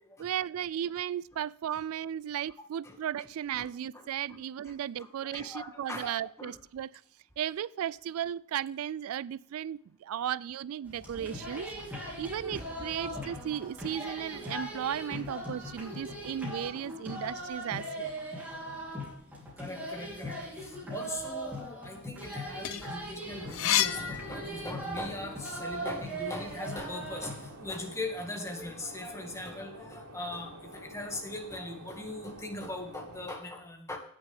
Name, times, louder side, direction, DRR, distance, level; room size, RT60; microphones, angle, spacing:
voice 1, 0.2-6.9 7.4-11.7 12.2-18.1 22.0-22.1, right 10 dB, 70° right, 0.3 m, -35 dB
voice 2, 3.9-4.4 4.6-4.7 5.2-6.5 11.9-12.4 19.6-34.0, left 2 dB, 15° left, 1.9 m, -40 dB
sound 1, 10.9-27.5, right 1 dB, 10° right, 3.3 m, -40 dB
sound 2, 22.5-25.0 25.5-26.9, left 13 dB, 65° left, 0.5 m, -32 dB
sound 3, 23.2-33.3, right 1 dB, 90° right, 2.9 m, -49 dB
17.0 x 6.7 x 3.5 m
head